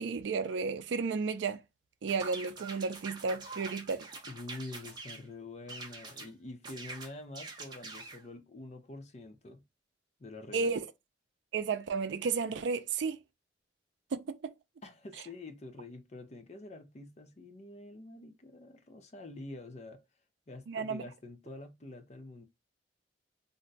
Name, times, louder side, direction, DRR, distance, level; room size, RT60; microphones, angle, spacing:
voice 1, 0.0-1.6 2.0-4.1 10.5-10.8 11.5-13.2 14.1-14.5 20.7-21.0, right 5 dB, 75° right, 0.4 m, -33 dB
sound 1, 2.1-5.2 5.7-6.3 6.6-8.2, right 3 dB, 25° right, 0.6 m, -45 dB
voice 2, 4.3-9.6 10.2-10.8 14.8-20.0 20.5-22.4, left 2 dB, 35° left, 0.5 m, -46 dB
2.6 x 2.1 x 3.8 m
head